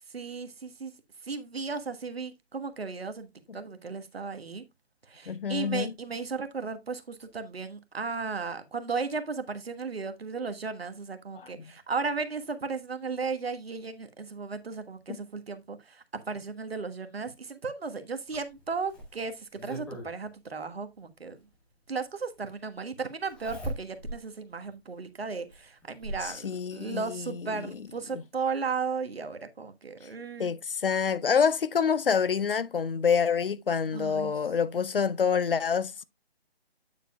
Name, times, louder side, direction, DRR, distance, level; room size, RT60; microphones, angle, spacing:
voice 1, 0.1-0.9 1.2-4.6 5.1-21.4 21.9-30.5 33.9-34.3, right 4 dB, 65° right, 1.5 m, -35 dB
voice 2, 5.3-5.9 11.6-11.7 26.2-27.7 28.1-28.2 30.4-36.0, left 6 dB, 60° left, 0.7 m, -27 dB
Zipper (clothing), 18.3-20.1 21.5-21.6 23.3-24.2 24.7-24.8 25.5-26.3 27.5-27.6 28.0-28.1, right 1 dB, 5° left, 1.0 m, -39 dB
9.2 x 7.3 x 2.3 m
figure-of-eight pair, 150°, 32 cm